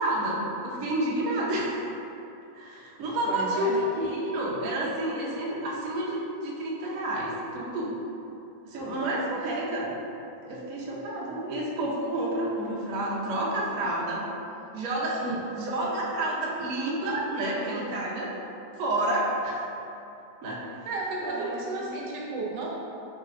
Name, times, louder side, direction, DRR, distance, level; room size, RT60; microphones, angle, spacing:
voice 1, 0.0-1.8 2.5-7.9 8.7-9.9 10.5-14.2 14.7-15.2 15.5-18.3 18.8-19.7 20.4-20.7 21.2-21.9, right 1 dB, 65° right, -4 dB, 1.0 m, -29 dB
voice 2, 3.2-3.8 15.2-15.4 20.9-22.7, right 3 dB, 85° right, -4 dB, 1.3 m, -33 dB
4.6 x 3.1 x 2.5 m, 2.8 s
omnidirectional pair, 1.9 m